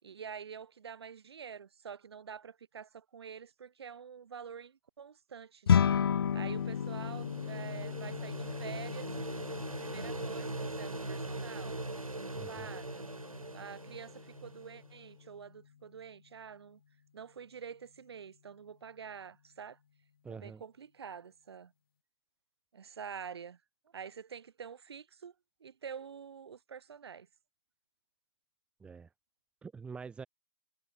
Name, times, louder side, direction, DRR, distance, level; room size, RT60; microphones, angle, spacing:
voice 1, 0.0-5.8 6.3-9.1 9.8-11.8 12.2-13.1 13.5-16.8 17.1-19.8 20.3-21.7 22.7-23.6 23.9-25.3 25.6-27.3, right 7 dB, 50° right, 6.0 m, -47 dB
sound 1, 5.7-15.1, left 8 dB, 45° left, 1.2 m, -34 dB
sound 2, 6.1-14.9, right 2 dB, 85° right, 2.5 m, -41 dB
voice 2, 12.4-12.7 20.2-20.6 28.8-29.1 29.6-30.3, right 5 dB, 5° right, 3.6 m, -45 dB
figure-of-eight pair, 140°, 17 cm